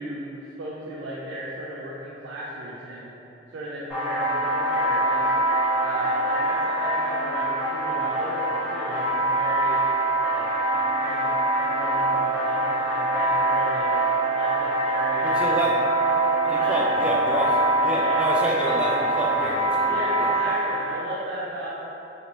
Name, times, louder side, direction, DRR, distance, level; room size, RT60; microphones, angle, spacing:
voice 1, 0.0-3.1 3.5-5.3 5.8-9.8 10.3-13.9 14.3-15.6 16.4-16.8 17.9-18.1 19.8-21.8, right 1 dB, 85° right, -7 dB, 0.4 m, -35 dB
sound 1, 3.9-20.7, right 2 dB, 15° left, 1.2 m, -24 dB
voice 2, 15.2-15.7 16.5-20.3, equal, 5° right, -4 dB, 0.3 m, -29 dB
3.1 x 2.6 x 2.9 m, 2.9 s
head